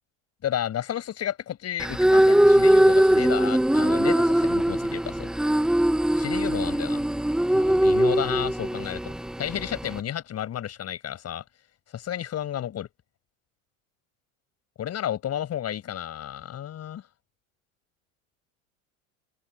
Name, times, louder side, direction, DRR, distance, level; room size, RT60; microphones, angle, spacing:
voice 1, 0.4-5.3 6.1-7.0 7.5-9.1 9.4-11.4 11.9-12.9 14.8-17.0, left 10 dB, 40° left, 6.7 m, -32 dB
sound 1, 1.8-10.0, right 1 dB, ahead, 0.7 m, -21 dB
open air
supercardioid pair, 110°, 41 cm